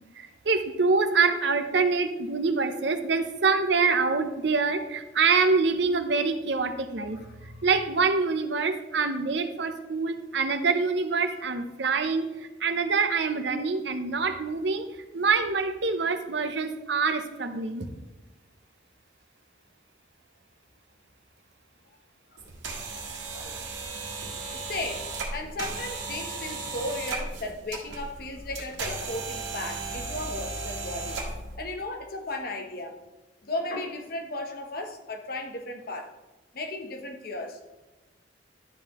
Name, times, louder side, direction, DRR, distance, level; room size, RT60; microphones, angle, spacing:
voice 1, 0.4-7.2 7.6-12.3 12.6-14.9 15.1-17.9, right 4 dB, 65° right, 9 dB, 0.7 m, -25 dB
voice 2, 7.1-7.5 22.3-22.4 23.3-24.2 24.5-31.2 31.6-32.9 33.4-36.1 36.5-37.6, left 2 dB, 50° left, 4 dB, 0.9 m, -35 dB
sound 1, 22.4-31.6, right 3 dB, 85° right, 1.6 m, -36 dB
11.5 x 5.6 x 3.0 m, 1.1 s
head